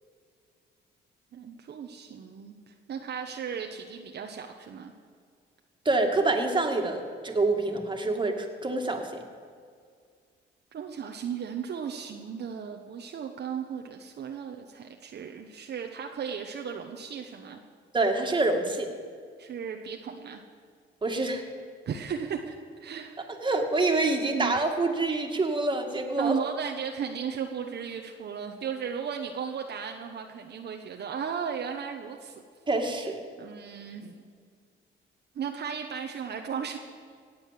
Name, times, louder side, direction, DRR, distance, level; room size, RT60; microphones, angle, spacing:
voice 1, 1.3-4.9 10.7-17.6 19.4-20.4 21.9-23.3 24.2-24.5 26.2-32.4 33.4-34.2 35.3-36.8, right 7 dB, 55° right, 3 dB, 1.1 m, -35 dB
voice 2, 5.9-9.1 17.9-18.9 21.0-21.4 23.4-26.4 32.7-33.2, right 2 dB, 25° right, 3 dB, 2.2 m, -26 dB
17.5 x 8.2 x 7.5 m, 2.1 s
cardioid pair, 90°, 20 cm